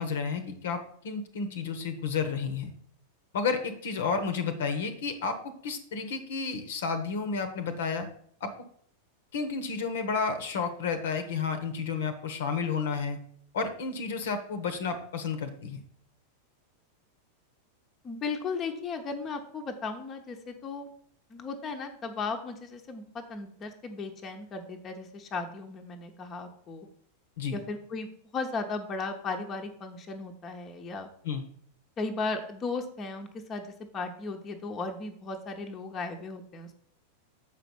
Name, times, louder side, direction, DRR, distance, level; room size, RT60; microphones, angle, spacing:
voice 1, 0.0-2.7 3.3-8.1 8.4-8.5 9.3-13.2 13.5-15.8 27.4-27.6 31.2-31.4, left 5 dB, 60° left, 8 dB, 1.0 m, -31 dB
voice 2, 18.0-20.9 21.3-26.9 27.5-31.1 32.0-33.7 33.9-36.7, left 4 dB, 25° left, 4 dB, 1.0 m, -36 dB
7.4 x 5.1 x 5.4 m, 0.62 s
figure-of-eight pair, 90°, 0 cm